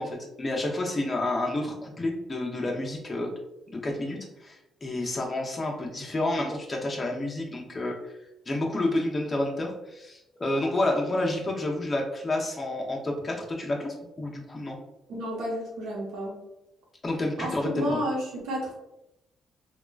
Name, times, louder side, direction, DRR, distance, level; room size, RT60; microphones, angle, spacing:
voice 1, 0.0-3.3 3.7-8.1 8.5-14.8 17.0-18.0, left 1 dB, 25° left, -1 dB, 0.7 m, -30 dB
voice 2, 15.1-16.3 17.4-18.7, equal, 85° right, -3 dB, 1.0 m, -31 dB
3.5 x 2.3 x 2.3 m, 0.89 s
cardioid pair, 90°, 0 cm